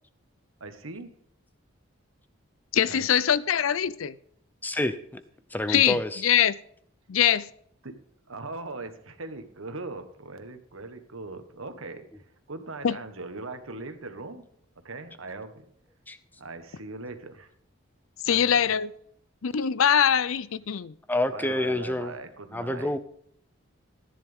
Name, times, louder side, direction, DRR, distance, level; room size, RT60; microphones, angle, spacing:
voice 1, 0.6-1.1 2.9-3.1 7.8-7.9 8.3-12.1 12.5-14.4 14.8-15.7 16.4-17.5 18.2-18.6 21.3-22.9, right 3 dB, 85° right, 1.5 m, -40 dB
voice 2, 2.7-4.1 5.7-6.6 7.1-7.5 12.8-13.0 18.2-18.9 19.4-20.9, left 9 dB, 80° left, 0.5 m, -23 dB
voice 3, 4.6-5.2 5.5-6.2 16.1-16.2 21.1-22.1 22.5-23.0, left 1 dB, 10° left, 0.6 m, -28 dB
14.0 x 10.5 x 3.6 m
head